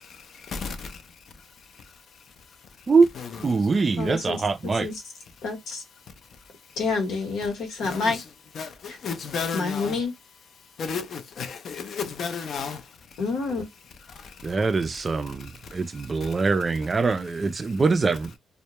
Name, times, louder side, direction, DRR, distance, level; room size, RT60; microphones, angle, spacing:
voice 1, 3.4-4.9 14.4-18.3, right 4 dB, 35° right, 0.3 m, -23 dB
voice 2, 4.0-4.4 4.7-5.0 5.4-5.8 6.8-8.2 8.9-9.0 9.5-10.1 13.2-13.6, left 4 dB, 80° left, 0.9 m, -28 dB
voice 3, 9.0-9.6 10.8-12.8, left 5 dB, 60° left, 0.5 m, -31 dB
2.1 x 2.1 x 2.9 m
cardioid pair, 90°, 0 cm